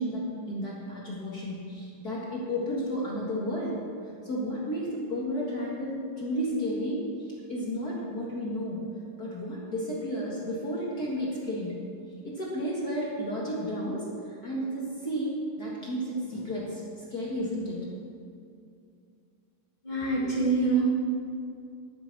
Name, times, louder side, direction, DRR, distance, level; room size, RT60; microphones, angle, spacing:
voice 1, 0.0-3.8 4.2-7.1 7.5-8.8 9.2-11.7 12.2-17.8, equal, 40° left, -5 dB, 1.3 m, -32 dB
voice 2, 19.8-20.8, right 3 dB, 85° left, -7 dB, 0.4 m, -25 dB
11.5 x 9.8 x 6.2 m, 2.4 s
omnidirectional pair, 4.7 m